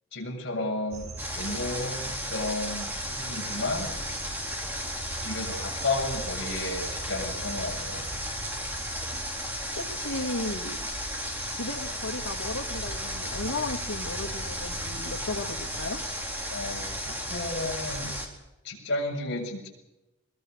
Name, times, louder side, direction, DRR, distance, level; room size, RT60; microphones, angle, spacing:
voice 1, 0.1-3.9 5.2-8.1 16.5-18.1 18.6-19.7, left 2 dB, 50° left, -2 dB, 7.6 m, -33 dB
sound 1, 0.9-18.2, right 2 dB, 60° right, 5.7 m, -40 dB
Water, 1.2-18.3, equal, 10° right, 4.0 m, -35 dB
voice 2, 9.8-10.9 11.5-16.0, left 2 dB, 75° left, 2 dB, 2.8 m, -35 dB
22.5 x 22.5 x 6.8 m, 0.96 s
head